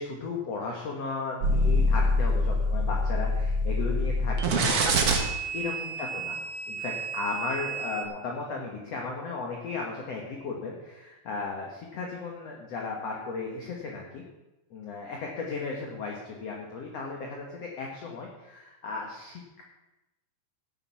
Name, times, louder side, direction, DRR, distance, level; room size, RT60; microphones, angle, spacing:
voice 1, 0.0-5.0 5.5-6.4 6.7-14.2 14.7-19.6, left 4 dB, 55° left, 0 dB, 1.9 m, -35 dB
sound 1, 1.4-8.0, equal, 60° right, 1.6 m, -26 dB
16.5 x 7.0 x 5.7 m, 1.0 s
omnidirectional pair, 4.3 m